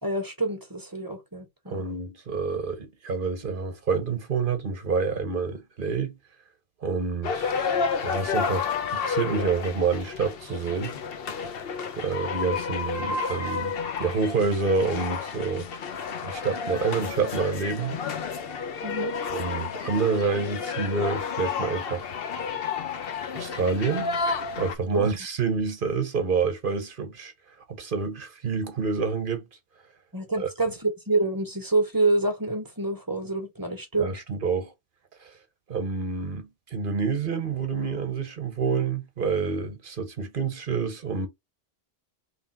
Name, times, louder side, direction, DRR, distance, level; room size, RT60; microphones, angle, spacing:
voice 1, 0.0-1.8 18.8-19.2 24.9-25.1 30.1-34.1, right 2 dB, 20° right, 0.9 m, -27 dB
voice 2, 1.7-6.2 6.8-7.8 8.0-11.0 12.0-13.7 14.0-15.7 16.2-18.0 19.3-22.1 23.3-24.1 24.6-27.3 27.7-29.5 30.4-30.5 34.0-34.7 35.2-35.3 35.7-41.3, right 5 dB, 55° right, 1.1 m, -28 dB
sound 1, 7.2-24.8, left 5 dB, 65° left, 0.9 m, -31 dB
3.3 x 2.8 x 4.4 m
omnidirectional pair, 1.1 m